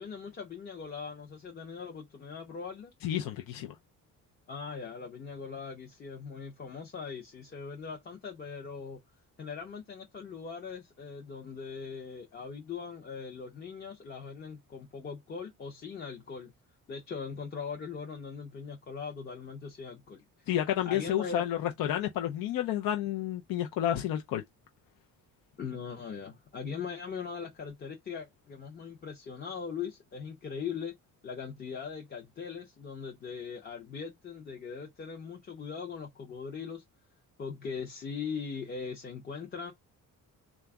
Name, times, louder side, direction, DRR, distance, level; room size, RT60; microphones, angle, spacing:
voice 1, 0.0-2.9 4.5-9.0 9.4-16.5 16.9-20.5 20.8-21.4 25.6-31.0 31.2-36.8 37.4-39.7, left 6 dB, 30° left, 0.6 m, -40 dB
voice 2, 3.0-3.8 20.5-24.4, left 11 dB, 80° left, 0.6 m, -30 dB
4.0 x 2.4 x 3.4 m
cardioid pair, 180°, 34 cm